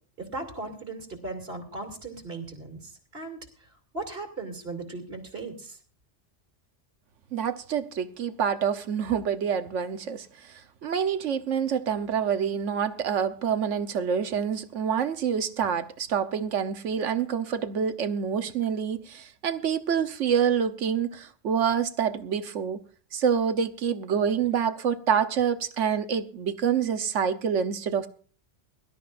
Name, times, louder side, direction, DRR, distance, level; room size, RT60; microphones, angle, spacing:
voice 1, 0.2-3.4 3.9-5.8, right 3 dB, 55° right, 3.1 m, -37 dB
voice 2, 7.3-10.5 10.8-22.8 23.1-28.1, right 7 dB, 85° right, 1.3 m, -27 dB
23.0 x 13.0 x 2.5 m
omnidirectional pair, 1.2 m